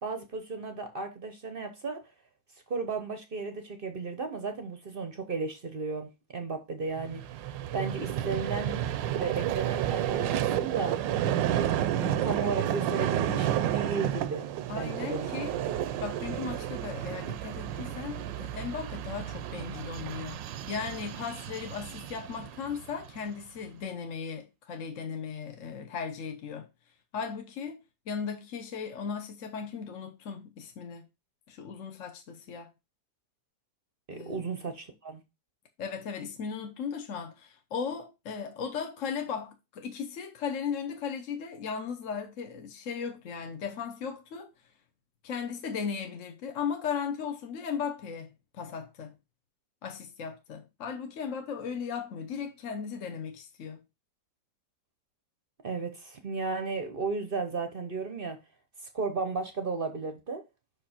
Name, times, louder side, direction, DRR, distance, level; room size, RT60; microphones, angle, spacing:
voice 1, 0.0-2.0 2.7-7.2 7.7-11.0 11.5-11.7 12.2-14.5 14.8-15.9 34.1-35.2 55.6-58.4 58.9-60.4, right 4 dB, 45° right, 0.7 m, -34 dB
Vehicle, 7.0-23.3, right 11 dB, 80° right, 1.3 m, -31 dB
voice 2, 14.7-15.5 16.0-26.7 27.1-31.0 31.5-32.7 34.1-34.4 35.8-44.5 45.2-49.1 49.8-53.8, left 6 dB, 55° left, 1.0 m, -37 dB
5.8 x 5.1 x 4.2 m
omnidirectional pair, 2.0 m